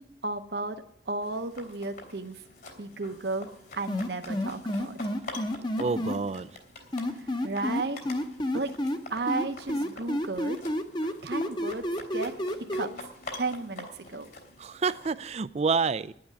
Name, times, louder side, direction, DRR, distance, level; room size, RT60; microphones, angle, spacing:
voice 1, 0.0-2.4 2.8-3.5 3.8-4.9 7.1-8.1 8.5-8.7 9.1-10.6 11.2-11.8 12.1-12.3 12.7-12.9 13.3-14.3, right 3 dB, 65° right, 7 dB, 0.9 m, -33 dB
sound 1, 1.2-15.1, left 2 dB, 60° left, 3.3 m, -46 dB
sound 2, 3.9-6.2 6.9-9.0 9.3-12.9, left 1 dB, 25° left, 0.9 m, -29 dB
voice 2, 5.8-6.6 14.6-16.1, right 4 dB, 35° right, 16 dB, 0.4 m, -28 dB
10.0 x 8.6 x 9.5 m, 0.72 s
head